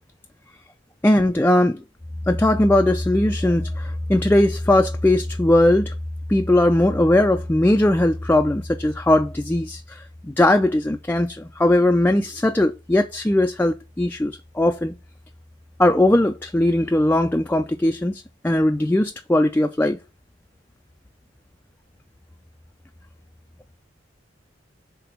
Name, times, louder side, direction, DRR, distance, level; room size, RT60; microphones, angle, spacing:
voice 1, 1.0-1.8 2.3-5.9 6.3-14.9 15.8-20.0, left 1 dB, 10° left, 0.4 m, -19 dB
5.9 x 3.8 x 5.6 m
head